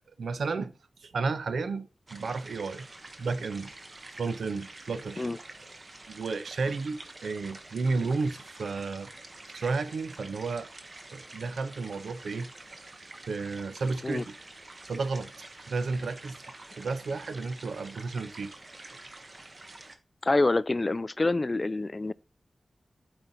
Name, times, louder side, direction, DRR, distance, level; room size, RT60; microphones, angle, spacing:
voice 1, 0.2-0.7 1.0-2.9 3.2-3.7 4.1-5.3 6.1-9.1 9.5-10.7 11.1-12.5 13.3-14.3 14.9-15.3 15.7-16.4 16.7-18.5, right 4 dB, 80° right, 0.7 m, -32 dB
sound 1, 2.1-20.0, right 2 dB, 35° right, 1.0 m, -48 dB
voice 2, 20.2-22.1, left 2 dB, 30° left, 0.3 m, -26 dB
8.9 x 4.5 x 4.0 m
wide cardioid pair, 105°, 0 cm